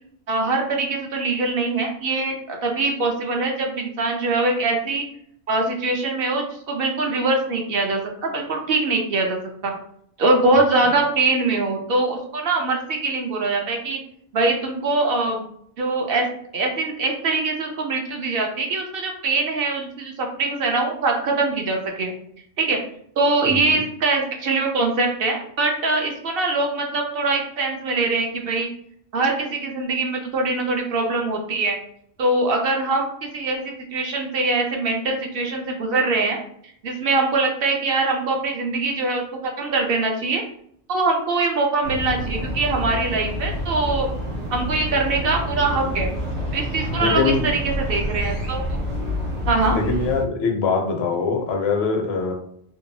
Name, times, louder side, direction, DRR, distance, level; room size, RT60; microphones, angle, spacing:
voice 1, 0.3-5.0 5.5-9.4 9.6-9.7 10.2-14.0 14.3-15.4 15.8-22.1 22.6-22.8 23.2-28.7 29.1-31.8 32.2-36.4 36.8-40.4 40.9-44.2 44.5-46.1 46.5-48.6 49.5-49.8, right 3 dB, 65° right, 2 dB, 0.7 m, -23 dB
voice 2, 23.5-23.8 46.9-47.4 49.7-52.3, left 4 dB, 70° left, 3 dB, 0.8 m, -23 dB
sound 1, 41.8-50.2, equal, 85° right, 1.1 m, -28 dB
2.8 x 2.2 x 2.6 m, 0.67 s
omnidirectional pair, 1.2 m